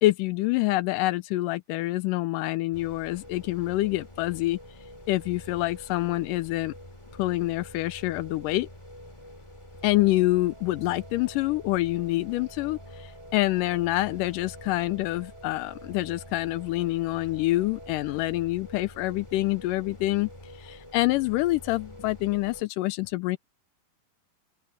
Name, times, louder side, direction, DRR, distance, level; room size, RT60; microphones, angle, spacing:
voice 1, 0.0-4.6 5.1-6.7 7.2-8.7 9.8-20.3 20.6-23.4, left 18 dB, 80° left, 2.0 m, -26 dB
sound 1, 2.7-22.6, left 1 dB, 10° left, 3.3 m, -46 dB
sound 2, 9.8-18.4, right 11 dB, 70° right, 3.4 m, -54 dB
open air
omnidirectional pair, 4.2 m